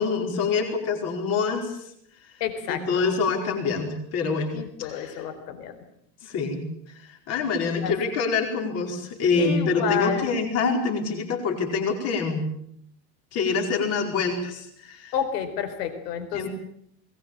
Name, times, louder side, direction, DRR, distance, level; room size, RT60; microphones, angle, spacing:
voice 1, 0.0-1.9 2.7-4.5 4.8-5.2 6.2-6.6 7.0-12.5 13.3-15.1 16.3-16.5, left 4 dB, 30° left, 3 dB, 4.8 m, -26 dB
voice 2, 2.4-3.0 4.5-5.8 7.8-7.9 9.4-10.3 15.1-16.5, left 8 dB, 75° left, 9 dB, 4.6 m, -30 dB
22.0 x 19.5 x 8.9 m, 0.70 s
supercardioid pair, 175°, 48 cm